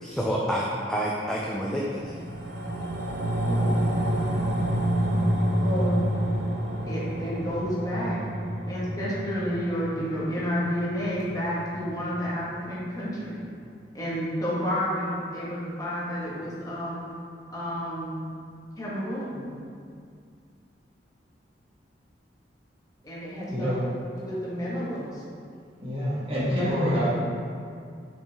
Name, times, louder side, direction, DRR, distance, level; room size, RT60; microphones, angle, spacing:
voice 1, 0.0-2.2, equal, 5° left, -4 dB, 0.4 m, -28 dB
sound 1, 2.0-12.6 13.0-13.1, right 1 dB, 85° right, 0.7 m, -28 dB
voice 2, 3.4-3.8 5.6-6.0 6.9-8.2 8.6-13.4 13.9-17.0 17.5-18.3 18.8-19.5 23.0-23.7 24.2-25.2, equal, 20° left, -8 dB, 1.5 m, -30 dB
voice 3, 23.4-23.8 25.8-27.1, equal, 35° right, -8 dB, 1.5 m, -26 dB
6.0 x 4.4 x 3.5 m, 2.2 s
head